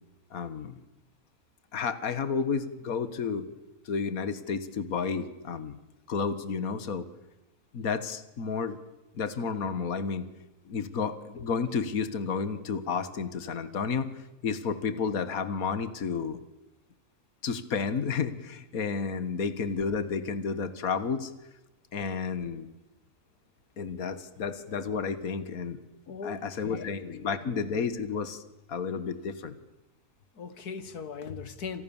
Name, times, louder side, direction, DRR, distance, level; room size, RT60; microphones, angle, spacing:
voice 1, 0.3-0.8 1.7-3.5 3.9-5.8 6.1-7.1 7.7-8.8 9.2-10.3 10.7-14.1 14.4-16.4 17.4-21.3 21.9-22.7 23.8-25.8 26.2-28.4 28.7-29.6, left 5 dB, 65° left, 2.0 m, -31 dB
voice 2, 26.1-27.5 30.4-31.8, left 5 dB, 85° left, 2.1 m, -40 dB
29.5 x 27.5 x 7.2 m
omnidirectional pair, 1.6 m